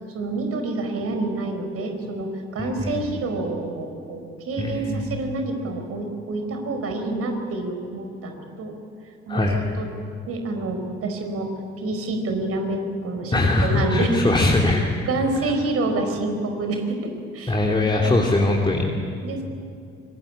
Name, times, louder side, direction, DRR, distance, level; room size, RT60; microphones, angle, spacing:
voice 1, 0.1-8.7 9.3-9.9 10.3-11.5 11.8-13.3 13.6-14.2 15.1-17.6 17.9-18.2 18.9-19.4, right 2 dB, 50° right, 5 dB, 4.8 m, -28 dB
voice 2, 2.6-2.9 4.6-5.1 9.3-9.6 13.3-14.8 17.5-18.8, left 2 dB, 15° left, 0 dB, 3.1 m, -21 dB
25.5 x 24.5 x 8.7 m, 2.5 s
figure-of-eight pair, 50°, 30 cm